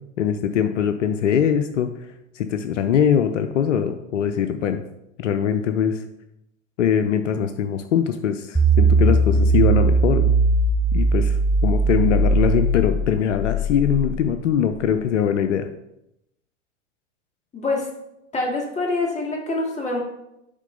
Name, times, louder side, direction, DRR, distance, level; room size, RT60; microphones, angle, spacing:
voice 1, 0.2-1.9 2.3-4.8 5.2-6.0 6.8-10.3 10.9-15.7, left 8 dB, 70° left, 8 dB, 0.6 m, -22 dB
sound 1, 8.5-14.8, right 3 dB, ahead, 0.6 m, -19 dB
voice 2, 17.5-17.9 18.3-20.0, left 2 dB, 20° left, -1 dB, 2.1 m, -25 dB
7.3 x 3.8 x 5.2 m, 0.85 s
hypercardioid pair, 95°, 37 cm